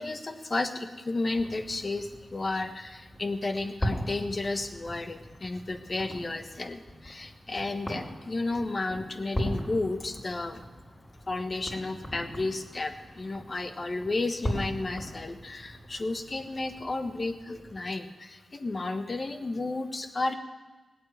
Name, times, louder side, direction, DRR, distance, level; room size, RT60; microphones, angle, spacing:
voice 1, 0.0-10.6 11.3-20.4, left 2 dB, 40° left, 8 dB, 1.3 m, -32 dB
sound 1, 1.3-18.0, equal, 25° left, 4.7 m, -39 dB
17.0 x 8.6 x 8.8 m, 1.2 s
cardioid pair, 75°, 0 cm